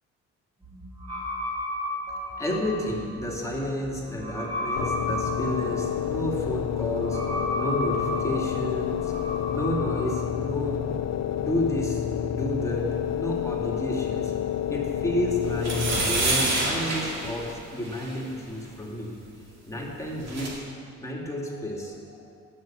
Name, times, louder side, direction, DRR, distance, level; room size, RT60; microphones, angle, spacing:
sound 1, 0.6-10.1, left 1 dB, 20° right, 2.8 m, -34 dB
voice 1, 2.1-7.2 7.5-10.8 11.4-19.1 19.7-22.3, left 1 dB, 10° left, -3 dB, 2.2 m, -31 dB
sound 2, 4.8-16.5, left 10 dB, 60° left, 0.6 m, -29 dB
sound 3, 15.6-18.2 19.8-19.9 20.1-20.5, right 2 dB, 60° right, 2.3 m, -27 dB
9.6 x 6.1 x 7.5 m, 2.3 s
cardioid pair, 90°, 30 cm